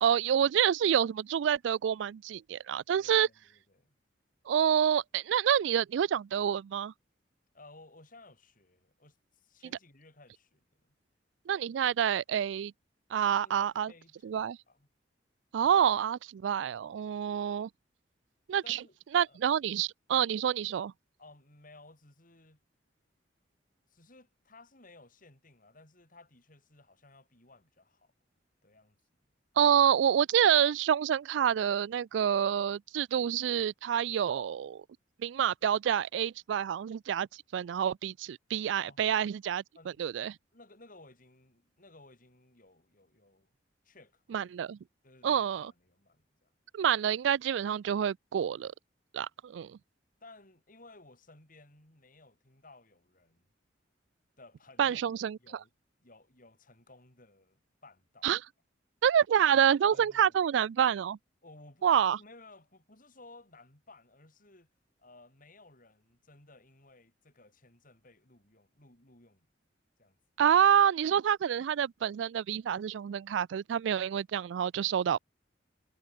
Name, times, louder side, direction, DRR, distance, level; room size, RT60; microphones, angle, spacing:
voice 1, 0.0-3.3 4.5-6.9 11.5-12.7 13.1-13.9 14.2-14.6 15.5-17.7 18.5-18.8 19.1-20.9 29.6-34.8 35.2-37.3 37.5-39.6 40.0-40.4 44.3-44.8 45.2-45.7 46.7-48.7 49.1-49.8 54.8-55.4 58.2-58.4 59.0-61.2 61.8-62.2 70.4-75.2, right 9 dB, 80° right, 0.3 m, -27 dB
voice 2, 2.9-3.9 7.5-11.0 13.1-14.9 18.6-19.0 19.2-19.4 21.2-22.6 23.9-28.1 28.6-29.0 38.8-39.0 39.8-40.1 40.5-43.5 43.8-44.5 45.0-46.5 50.2-53.5 54.4-55.7 56.0-58.3 59.9-60.4 61.4-61.9 62.2-64.7 65.0-69.5 70.0-70.2, left 2 dB, 50° left, 6.8 m, -57 dB
head